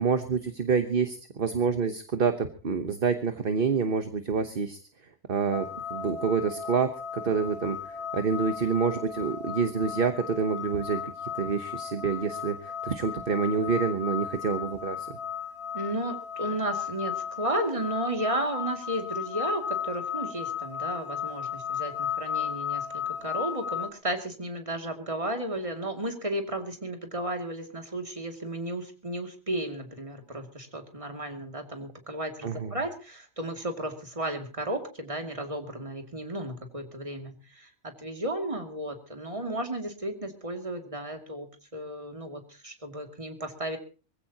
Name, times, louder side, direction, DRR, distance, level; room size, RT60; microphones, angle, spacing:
voice 1, 0.0-4.8 5.3-7.8 8.1-15.1 32.4-32.7, right 5 dB, 50° right, 8 dB, 1.3 m, -27 dB
sound 1, 5.5-23.9, left 8 dB, 65° left, 2.2 m, -35 dB
voice 2, 15.7-41.5 41.7-43.8, right 1 dB, 30° right, 4 dB, 2.5 m, -34 dB
23.5 x 15.5 x 2.9 m, 0.36 s
omnidirectional pair, 1.2 m